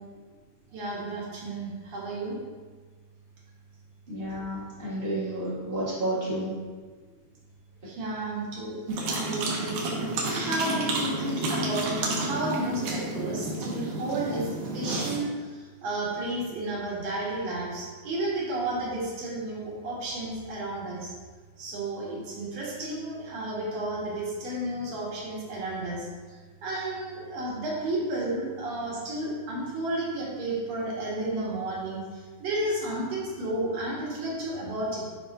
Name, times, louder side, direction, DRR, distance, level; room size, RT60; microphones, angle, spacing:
voice 1, 0.7-2.4 7.9-8.8 9.1-9.7 10.2-14.5 14.7-21.1 21.6-26.1 26.6-35.1, right 2 dB, 60° right, -5 dB, 2.4 m, -32 dB
voice 2, 4.1-6.5, right 1 dB, 25° right, -12 dB, 1.1 m, -31 dB
sound 1, 8.9-15.2, right 2 dB, 75° right, 2.5 m, -30 dB
9.8 x 5.2 x 2.6 m, 1.4 s
omnidirectional pair, 3.8 m